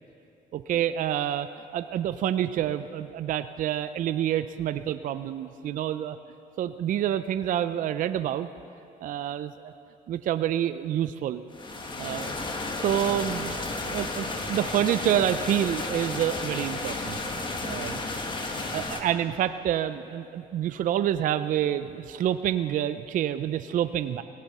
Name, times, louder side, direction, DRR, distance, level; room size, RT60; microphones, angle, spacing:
voice 1, 0.5-1.5 1.7-6.2 6.6-8.5 9.0-9.7 10.1-11.4 12.0-12.4 12.8-13.5 13.8-18.0 18.7-24.2, right 11 dB, 50° right, 12 dB, 0.4 m, -28 dB
sound 1, 11.5-19.0, left 2 dB, 30° left, 1.4 m, -32 dB
18.0 x 16.0 x 4.2 m, 2.7 s
cardioid pair, 110°, 17 cm